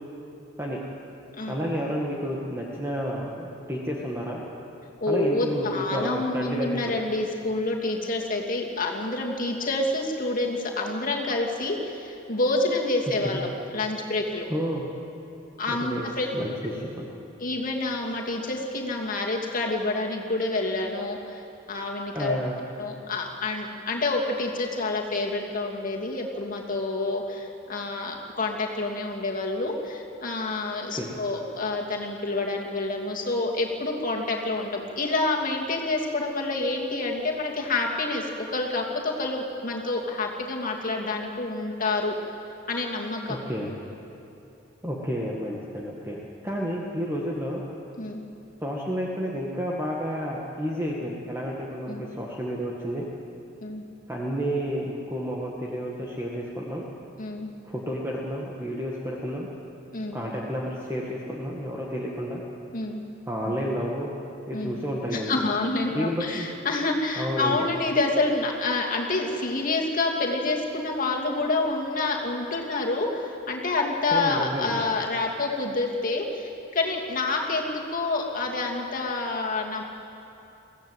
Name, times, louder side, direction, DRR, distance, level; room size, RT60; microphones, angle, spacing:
voice 1, 1.5-4.4 5.1-7.0 14.5-14.9 15.7-16.1 16.3-17.1 22.1-22.6 30.9-31.2 43.3-43.7 44.8-46.2 46.4-47.6 48.6-53.0 54.1-56.9 57.6-59.5 60.1-62.4 63.3-64.1 64.5-65.4 65.9-66.5 67.2-67.7 74.1-74.8, equal, 15° right, -3 dB, 1.9 m, -30 dB
voice 2, 5.0-14.5 15.6-16.3 17.4-21.4 21.7-22.4 22.8-42.1 42.7-43.4 48.0-48.2 51.9-52.0 53.6-53.8 57.2-57.5 59.9-60.2 62.7-63.0 63.4-63.6 64.5-64.8 65.1-79.8, left 2 dB, 45° left, 0 dB, 2.6 m, -28 dB
22.5 x 15.5 x 8.1 m, 2.9 s
head